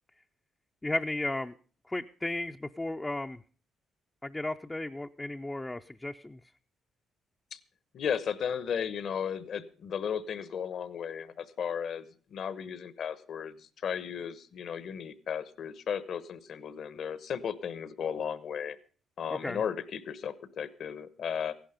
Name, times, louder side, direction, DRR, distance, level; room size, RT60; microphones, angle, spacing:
voice 1, 0.8-1.5 1.9-3.4 4.2-6.4 19.3-19.6, left 2 dB, 15° left, 4 dB, 0.5 m, -34 dB
voice 2, 7.9-18.8 19.2-21.5, left 7 dB, 65° left, 15 dB, 1.1 m, -35 dB
15.5 x 11.5 x 5.1 m, 0.39 s
cardioid pair, 90°, 0 cm